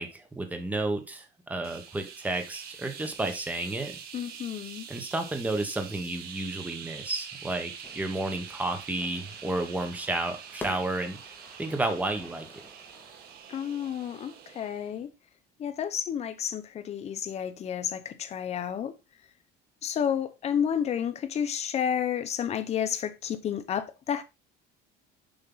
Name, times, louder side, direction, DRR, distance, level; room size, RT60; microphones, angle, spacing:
voice 1, 0.0-4.0 4.9-11.2 11.6-12.5, right 2 dB, 10° right, 1.1 m, -31 dB
sound 1, 1.6-15.0, right 7 dB, 55° right, 1.5 m, -45 dB
voice 2, 4.1-4.9 13.5-15.1 15.6-18.9 19.8-24.2, left 8 dB, 35° left, 0.9 m, -31 dB
Fire / Fireworks, 7.8-13.4, left 2 dB, 10° left, 1.7 m, -48 dB
7.1 x 5.4 x 3.8 m
cardioid pair, 155°, 18 cm